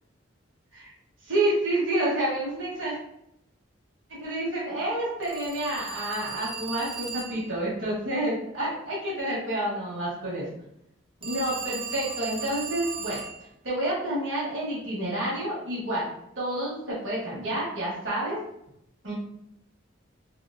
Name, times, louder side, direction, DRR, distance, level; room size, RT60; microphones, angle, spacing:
voice 1, 1.3-2.9 4.2-10.5 11.2-13.2 13.6-16.1 16.3-18.4 19.0-19.1, right 1 dB, 75° right, -7 dB, 1.3 m, -29 dB
Telephone, 5.2-7.5 11.2-13.4, right 5 dB, 25° right, 0.3 m, -37 dB
2.8 x 2.8 x 2.5 m, 0.79 s
head